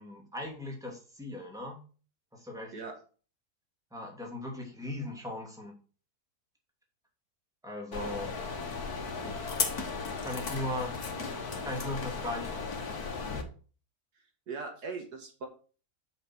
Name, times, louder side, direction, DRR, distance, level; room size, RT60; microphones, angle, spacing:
voice 1, 0.0-1.8 2.3-2.7 3.9-5.7 7.6-8.3 10.2-10.9 11.6-12.6, left 1 dB, ahead, 0 dB, 2.7 m, -38 dB
sound 1, 7.9-13.4, left 5 dB, 70° left, 1.9 m, -35 dB
voice 2, 14.5-15.5, right 4 dB, 80° right, 3 dB, 2.4 m, -39 dB
7.8 x 6.0 x 6.1 m, 0.39 s
omnidirectional pair, 1.7 m